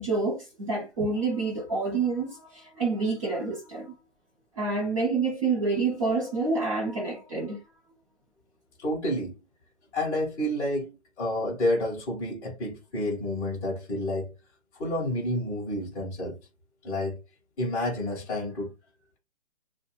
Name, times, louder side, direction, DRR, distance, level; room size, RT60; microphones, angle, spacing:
voice 1, 0.0-3.9 4.6-7.6, right 3 dB, 30° right, 0.8 m, -28 dB
voice 2, 8.8-9.4 9.9-10.9 11.2-14.3 14.8-16.4 16.8-17.2 17.6-18.7, left 1 dB, 10° left, 0.7 m, -29 dB
2.6 x 2.2 x 3.0 m
hypercardioid pair, 155°, 34 cm